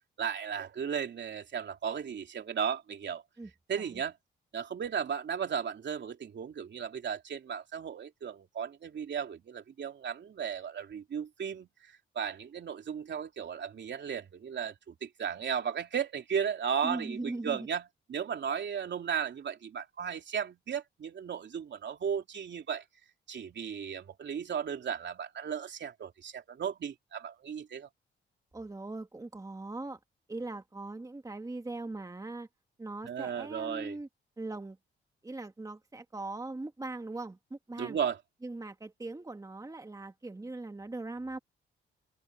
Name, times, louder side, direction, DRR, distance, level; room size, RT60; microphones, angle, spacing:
voice 1, 0.2-3.2 3.7-4.2 4.5-17.8 18.1-22.8 23.3-27.9 33.0-34.0 37.8-38.2, right 7 dB, 60° right, 3.1 m, -35 dB
voice 2, 3.4-4.0 16.8-17.7 28.5-30.0 30.3-32.5 32.8-34.1 34.4-34.8 35.2-38.0 38.4-41.4, right 2 dB, 15° right, 1.7 m, -40 dB
open air
cardioid pair, 80°, 21 cm